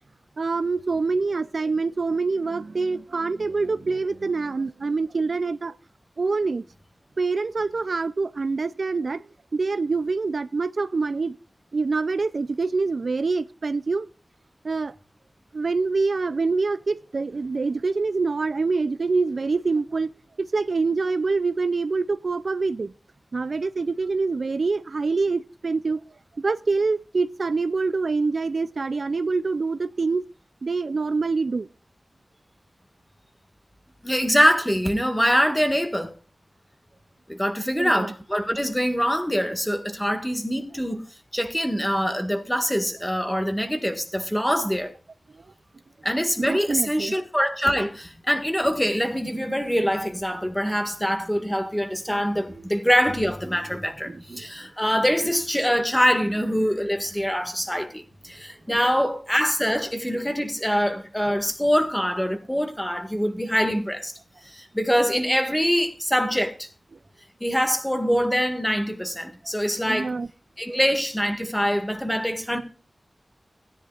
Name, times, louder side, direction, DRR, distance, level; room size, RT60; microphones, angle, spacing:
voice 1, 0.4-5.7 6.2-6.6 7.2-11.4 11.7-14.1 14.6-14.9 15.5-20.1 20.4-22.9 23.3-26.0 26.4-30.2 30.6-31.7 37.8-38.1 46.4-47.2 52.5-52.7 54.1-54.5 69.9-70.3 70.7-70.8, right 4 dB, 75° right, 0.4 m, -25 dB
voice 2, 34.0-36.1 37.3-41.0 41.3-44.9 46.0-64.1 64.4-66.7 67.4-70.1 70.6-72.6, equal, 10° left, 1.8 m, -24 dB
16.5 x 10.0 x 2.4 m
wide cardioid pair, 65°, 0 cm